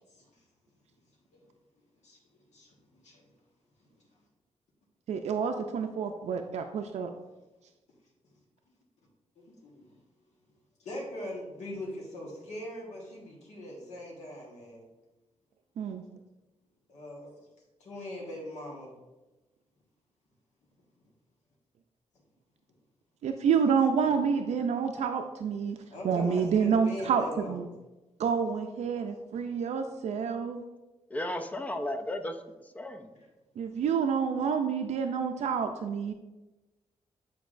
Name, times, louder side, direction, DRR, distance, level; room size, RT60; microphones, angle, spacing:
voice 1, 2.5-3.2 9.4-9.9 10.8-14.9 16.9-17.3 17.8-18.9 25.8-27.7 33.1-33.3, left 1 dB, 90° left, -2 dB, 1.4 m, -41 dB
voice 2, 5.1-7.1 15.8-16.0 23.2-25.8 26.0-27.7 28.2-30.6 33.6-36.1, right 6 dB, 80° right, 5 dB, 0.4 m, -28 dB
voice 3, 31.1-32.4 32.7-33.1, left 1 dB, 15° left, 7 dB, 0.4 m, -34 dB
8.1 x 4.6 x 2.5 m, 1.1 s
wide cardioid pair, 155°, 11 cm